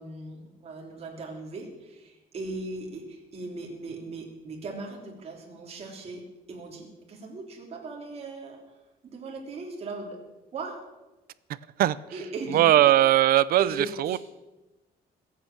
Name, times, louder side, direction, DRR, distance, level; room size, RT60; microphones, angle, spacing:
voice 1, 0.0-6.2 6.5-8.6 9.0-10.2 10.5-10.8 12.1-12.9 13.6-14.2, right 3 dB, 40° right, 0 dB, 3.5 m, -38 dB
voice 2, 12.5-13.7 14.0-14.2, right 13 dB, 65° right, 18 dB, 0.5 m, -19 dB
21.0 x 8.6 x 7.2 m, 1.1 s
cardioid pair, 170°, 16 cm